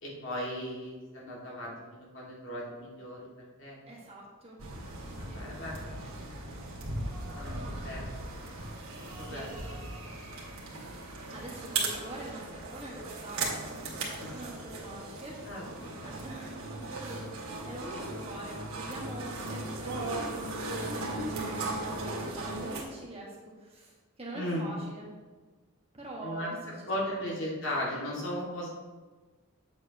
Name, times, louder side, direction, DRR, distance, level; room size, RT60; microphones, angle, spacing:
voice 1, 0.0-3.3 3.6-3.8 5.1-5.8 6.7-7.0 7.3-7.6 7.8-8.0 9.0-9.5 11.2-11.4 14.2-14.4 15.5-16.2 24.3-24.7 26.2-26.5 26.9-28.7, left 1 dB, 60° left, -4 dB, 2.3 m, -37 dB
voice 2, 3.9-4.6 5.0-5.4 7.5-8.0 9.2-9.8 11.3-15.4 16.2-25.1 25.9-26.6 26.9-27.3, right 1 dB, 25° right, -3 dB, 1.6 m, -44 dB
sound 1, 4.6-22.8, right 2 dB, 85° right, 2.2 m, -37 dB
8.8 x 7.7 x 3.0 m, 1.3 s
head